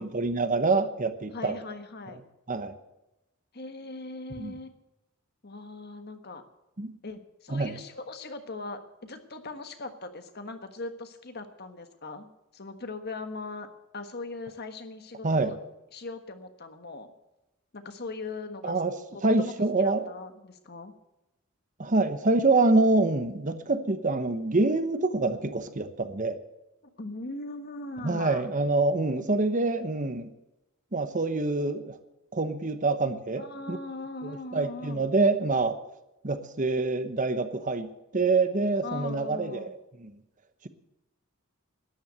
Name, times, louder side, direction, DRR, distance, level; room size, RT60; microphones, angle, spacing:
voice 1, 0.0-1.5 2.5-2.7 4.4-4.5 6.8-6.9 7.5-7.7 15.2-15.5 18.6-18.9 19.2-20.0 21.8-26.4 28.0-30.3 30.9-32.0 32.3-33.4 33.7-33.8 34.2-35.8 36.2-39.7 40.0-40.1, right 3 dB, 40° right, 10 dB, 1.0 m, -26 dB
voice 2, 1.3-2.2 3.5-4.7 5.4-6.4 7.0-13.7 13.9-15.6 15.9-17.1 17.7-18.8 19.1-19.5 19.8-20.9 27.0-28.5 33.4-35.1 38.8-39.7, left 3 dB, 50° left, 8 dB, 1.4 m, -40 dB
13.0 x 10.5 x 8.0 m, 0.93 s
head